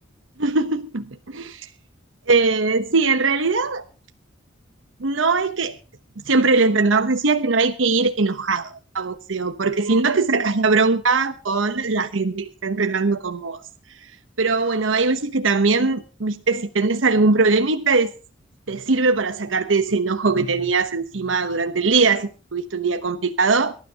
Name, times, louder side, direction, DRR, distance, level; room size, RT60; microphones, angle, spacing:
voice 1, 0.4-1.7 2.3-3.8 5.0-5.8 6.3-13.6 14.4-18.1 18.7-23.7, right 3 dB, 90° right, 1.0 m, -21 dB
24.0 x 12.5 x 2.9 m
head